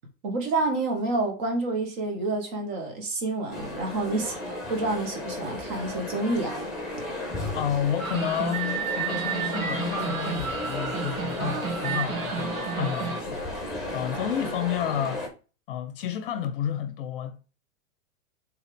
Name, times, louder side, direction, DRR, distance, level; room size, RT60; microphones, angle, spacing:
voice 1, 0.2-4.3 4.7-6.6, right 2 dB, 35° right, 2.0 m, -28 dB
sound 1, 3.5-15.3, left 1 dB, ahead, 1.3 m, -34 dB
voice 2, 7.5-15.2 15.7-17.4, left 9 dB, 40° left, 0.9 m, -31 dB
sound 2, 8.0-13.2, right 6 dB, 80° right, 2.1 m, -31 dB
6.0 x 3.8 x 5.1 m
supercardioid pair, 175°, 41 cm